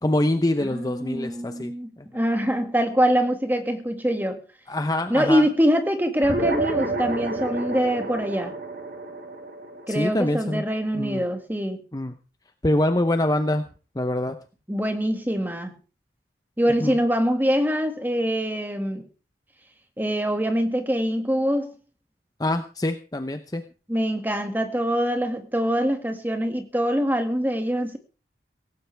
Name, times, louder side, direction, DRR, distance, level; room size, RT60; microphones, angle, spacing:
voice 1, 0.0-1.7 2.0-2.1 4.7-5.4 9.9-10.6 10.9-11.2 11.9-12.1 12.6-13.6 14.0-14.4 16.8-17.0 22.4-23.6, left 1 dB, 20° left, 8 dB, 0.8 m, -24 dB
voice 2, 0.6-4.4 5.1-8.6 9.9-11.8 14.7-15.8 16.6-19.1 20.0-21.7 23.9-28.0, equal, 10° right, 6 dB, 2.0 m, -24 dB
sound 1, 6.2-11.0, right 2 dB, 65° right, 3.4 m, -30 dB
17.5 x 16.0 x 3.4 m, 0.35 s
head